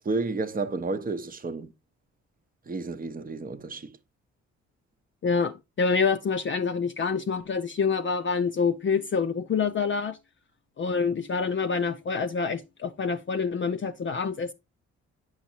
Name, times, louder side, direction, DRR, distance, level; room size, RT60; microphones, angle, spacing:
voice 1, 0.0-1.7 2.7-3.9, right 3 dB, 25° right, 0.8 m, -31 dB
voice 2, 5.2-10.2 10.8-14.5, left 5 dB, 35° left, 0.6 m, -27 dB
8.1 x 6.1 x 2.8 m
hypercardioid pair, 45°, 32 cm